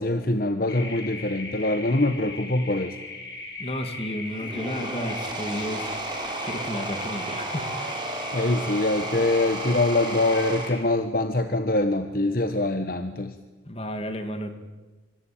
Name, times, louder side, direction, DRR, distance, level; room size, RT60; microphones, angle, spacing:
voice 1, 0.0-3.0 8.3-13.3, left 2 dB, 50° left, 8 dB, 1.3 m, -24 dB
sound 1, 0.7-10.8, left 3 dB, 70° left, 7.3 m, -38 dB
voice 2, 3.6-5.9 6.4-8.2 13.7-14.5, equal, 30° left, 7 dB, 2.5 m, -32 dB
sound 2, 4.3-10.7, right 2 dB, 25° right, 4.6 m, -33 dB
25.5 x 25.0 x 8.8 m, 1.2 s
head